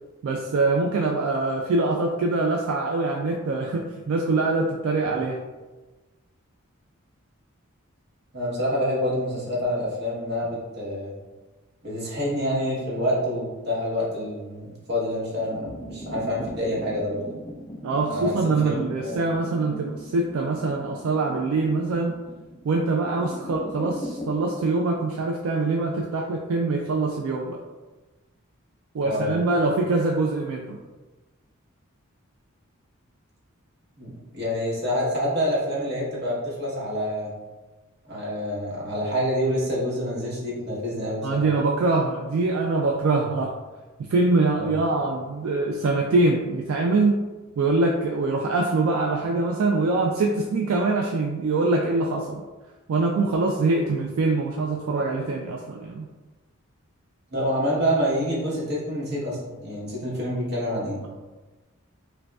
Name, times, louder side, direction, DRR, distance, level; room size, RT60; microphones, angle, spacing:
voice 1, 0.2-5.4 17.8-22.2 22.6-27.6 28.9-30.8 41.2-43.6 44.1-47.2 47.6-52.4 52.9-56.1, right 3 dB, 75° right, 1 dB, 0.3 m, -24 dB
voice 2, 8.3-11.1 11.8-17.3 18.1-19.2 29.0-29.4 34.0-37.3 38.0-41.5 44.6-44.8 57.3-61.1, equal, 50° right, -5 dB, 1.1 m, -27 dB
sound 1, 15.3-24.4, equal, 15° left, 0.3 m, -39 dB
4.8 x 2.2 x 2.3 m, 1.2 s
head